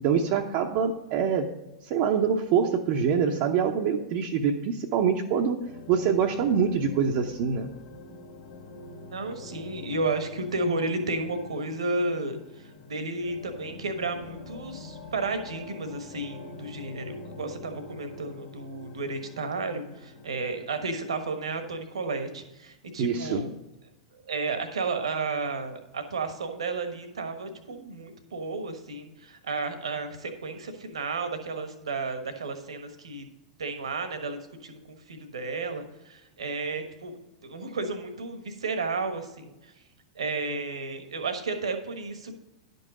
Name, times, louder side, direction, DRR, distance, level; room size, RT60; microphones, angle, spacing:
voice 1, 0.0-1.6 1.8-5.6 5.9-7.7 23.0-23.5, right 7 dB, 45° right, 1 dB, 0.8 m, -25 dB
sound 1, 5.6-20.9, left 3 dB, 60° left, 1.8 m, -45 dB
voice 2, 9.1-12.4 12.9-23.5 24.3-33.2 33.6-34.4 34.6-37.1 37.4-39.7 40.1-42.4, right 3 dB, 75° right, 7 dB, 1.3 m, -32 dB
11.0 x 5.4 x 5.1 m, 0.98 s
figure-of-eight pair, 95°, 3 cm